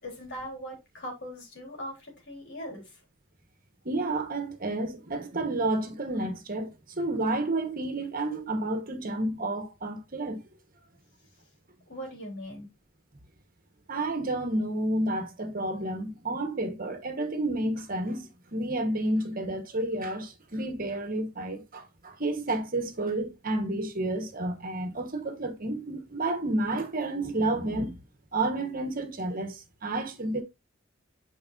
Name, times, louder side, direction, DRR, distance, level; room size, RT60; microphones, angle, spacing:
voice 1, 0.0-3.0 11.9-12.7, equal, 60° left, 3.5 m, -40 dB
voice 2, 3.8-10.4 13.9-28.0 28.3-30.4, right 2 dB, 45° right, 1.3 m, -30 dB
8.8 x 4.8 x 2.6 m
head